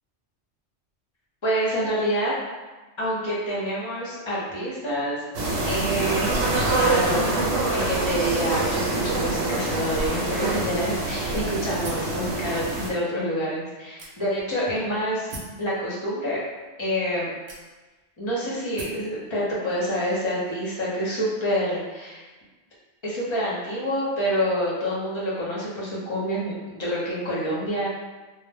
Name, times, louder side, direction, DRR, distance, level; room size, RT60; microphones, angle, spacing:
voice 1, 1.4-2.3 3.0-5.2 5.7-7.4 7.7-15.3 15.6-16.4 16.8-17.3 18.2-22.3 23.0-27.9, equal, 35° left, -6 dB, 0.5 m, -27 dB
sound 1, 5.3-12.9, right 2 dB, 80° right, 1.0 m, -25 dB
sound 2, 11.8-12.2 13.0-13.1 14.0-14.5 15.3-15.6 16.6-16.7 17.5-18.0 18.8-19.1, right 1 dB, 60° right, 0.6 m, -39 dB
2.1 x 2.0 x 3.3 m, 1.2 s
omnidirectional pair, 1.2 m